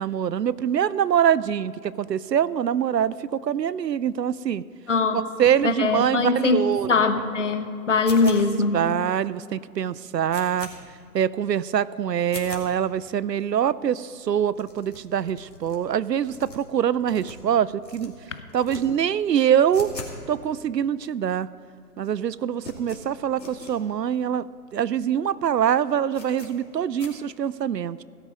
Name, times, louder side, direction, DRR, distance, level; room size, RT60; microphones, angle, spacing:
voice 1, 0.0-4.6 5.4-6.9 8.2-8.3 8.7-10.7 11.1-18.1 18.5-19.9 20.3-21.5 22.0-24.5 24.7-28.0, right 9 dB, 80° right, 19 dB, 0.6 m, -24 dB
voice 2, 4.9-5.3 5.6-6.6 6.9-8.8, left 4 dB, 45° left, 9 dB, 1.0 m, -22 dB
sound 1, 8.0-8.7 9.2-9.3 9.6-9.7 10.0-10.7 11.2-11.3 11.6-11.7 12.2-12.7 13.2-13.3 13.5-13.6 13.8-13.9 14.1-14.2 14.5-15.8 16.2-17.5 17.8-18.1 18.5-18.8 19.1-20.2 20.5-20.6 21.2-21.3 21.5-21.9 22.1-23.7 24.2-24.3 24.5-24.6 25.1-25.2 25.5-25.6 26.1-26.5 27.0-27.1, left 3 dB, 80° left, 2.7 m, -42 dB
17.0 x 8.2 x 5.1 m, 2.5 s
figure-of-eight pair, 155°, 50 cm